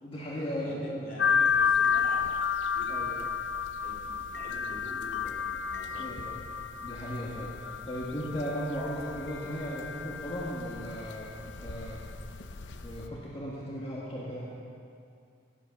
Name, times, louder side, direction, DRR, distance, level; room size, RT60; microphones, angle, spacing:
voice 1, 0.0-1.3 2.9-3.2 6.0-6.4 6.8-12.0 12.8-14.5, equal, 30° left, -6 dB, 1.7 m, -36 dB
voice 2, 0.5-2.2 2.7-3.2 3.8-6.1, left 1 dB, 55° left, -3 dB, 2.6 m, -47 dB
sound 1, 1.2-13.1, left 6 dB, 80° left, 0.7 m, -32 dB
16.5 x 8.5 x 6.0 m, 2.4 s
head